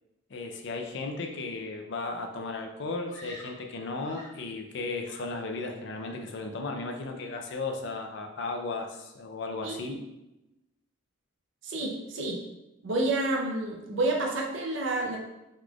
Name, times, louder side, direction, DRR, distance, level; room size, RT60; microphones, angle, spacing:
voice 1, 0.3-10.0, left 3 dB, 60° left, 4 dB, 0.4 m, -35 dB
Screaming, 3.1-4.5 5.0-5.7 5.9-6.4, equal, 40° left, 1.4 m, -49 dB
voice 2, 9.6-10.0 11.6-12.4 12.8-15.2, right 2 dB, 65° right, 0 dB, 0.5 m, -29 dB
4.0 x 3.1 x 2.3 m, 0.95 s
head